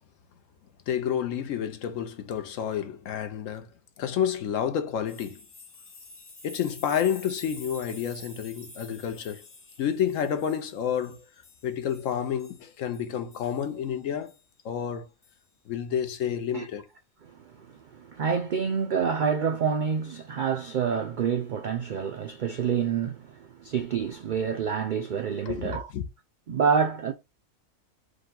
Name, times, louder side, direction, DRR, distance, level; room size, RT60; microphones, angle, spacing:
voice 1, 0.9-3.7 4.0-5.4 6.4-9.4 9.8-11.2 11.6-14.3 14.6-15.1 15.7-16.8 25.5-26.0, left 9 dB, 75° left, 1.1 m, -29 dB
sound 1, 5.1-13.7 14.3-14.4 15.2-15.3, left 2 dB, 35° left, 1.1 m, -48 dB
voice 2, 17.2-25.9 26.5-27.1, right 6 dB, 75° right, 0.4 m, -28 dB
5.0 x 2.2 x 3.7 m
omnidirectional pair, 1.4 m